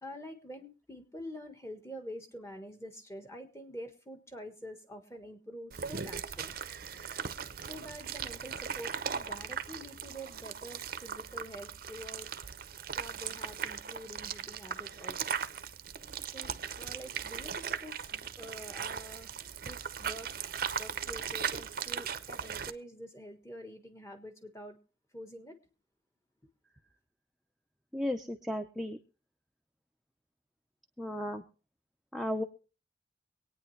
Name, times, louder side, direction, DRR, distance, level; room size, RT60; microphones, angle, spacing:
voice 1, 0.0-6.6 7.6-12.3 12.9-15.4 16.2-19.3 19.6-20.3 20.8-24.8 25.1-25.6, equal, 15° left, 6 dB, 1.4 m, -47 dB
sound 1, 5.7-22.7, right 7 dB, 50° right, 0.6 m, -38 dB
voice 2, 27.9-29.0 31.0-31.4 32.1-32.4, left 1 dB, ahead, 2 dB, 0.6 m, -34 dB
24.0 x 9.3 x 3.2 m, 0.36 s
head